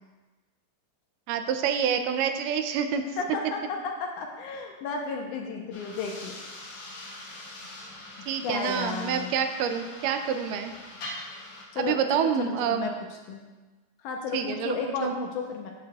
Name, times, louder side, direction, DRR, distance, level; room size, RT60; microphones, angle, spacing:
voice 1, 1.3-3.0 8.3-10.7 11.8-12.9 14.3-15.1, right 8 dB, 80° right, 7 dB, 2.1 m, -27 dB
voice 2, 3.2-6.3 8.4-9.3 11.7-12.9 13.3-13.5 14.0-15.7, left 5 dB, 75° left, 1 dB, 2.1 m, -33 dB
sound 1, 5.7-11.6, left 1 dB, 55° left, 1.9 m, -43 dB
13.0 x 6.6 x 2.3 m, 1.2 s
omnidirectional pair, 3.9 m